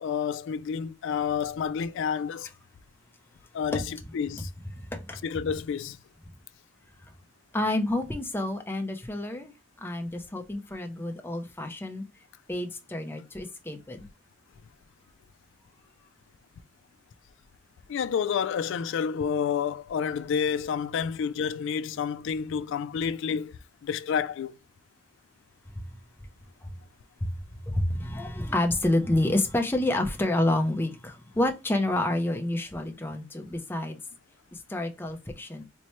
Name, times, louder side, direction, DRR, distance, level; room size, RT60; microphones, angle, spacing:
voice 1, 0.0-2.5 3.5-4.5 5.2-6.0 17.9-23.5 23.8-24.5, left 7 dB, 65° left, 0.3 m, -29 dB
voice 2, 7.5-9.5 9.8-12.0 12.5-14.0 26.6-26.7 27.2-27.3 27.7-34.0 34.7-35.6, left 1 dB, 10° left, 0.6 m, -28 dB
4.3 x 2.1 x 3.0 m
head